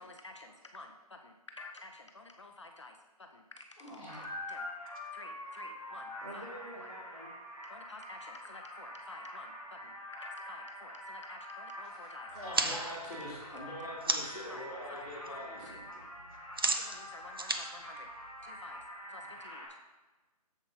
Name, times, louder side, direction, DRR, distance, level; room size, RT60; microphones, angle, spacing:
voice 1, 0.0-4.7 5.1-6.5 6.7-6.9 7.7-12.3 13.5-13.6 14.5-15.8 16.6-18.1 18.4-18.8 19.1-19.7, left 2 dB, 45° left, 4 dB, 0.5 m, -51 dB
voice 2, 3.8-4.2 12.4-15.6, left 1 dB, 10° left, -14 dB, 2.7 m, -44 dB
sound 1, 4.1-19.7, left 1 dB, 10° right, 2.2 m, -46 dB
voice 3, 6.2-7.3 12.3-13.0 15.6-16.4, right 1 dB, 60° right, -1 dB, 2.0 m, -48 dB
sound 2, 12.3-14.5 14.9-15.3 15.6-18.8, right 2 dB, 35° right, 0.4 m, -35 dB
7.4 x 7.1 x 3.9 m, 1.2 s
hypercardioid pair, 180°, 20 cm